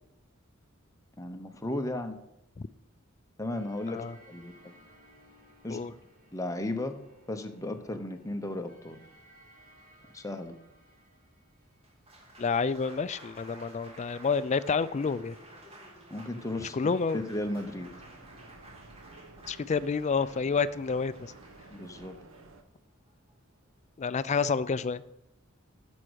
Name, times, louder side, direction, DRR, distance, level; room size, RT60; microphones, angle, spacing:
voice 1, 1.2-2.2 3.4-4.7 5.6-5.9 6.3-7.0 7.3-9.0 10.1-10.6 16.1-16.8 17.1-17.9 21.7-22.2, left 1 dB, 15° left, 6 dB, 0.8 m, -35 dB
sound 1, 3.5-12.3, equal, 45° right, 2.2 m, -60 dB
Applause, 11.7-23.9, right 1 dB, 30° right, 2.1 m, -53 dB
voice 2, 12.4-15.4 16.6-17.2 19.5-21.3 24.0-25.0, left 5 dB, 35° left, 16 dB, 0.4 m, -29 dB
sound 2, 17.3-22.6, right 2 dB, 70° right, 1.0 m, -53 dB
10.0 x 6.2 x 6.3 m, 0.86 s
head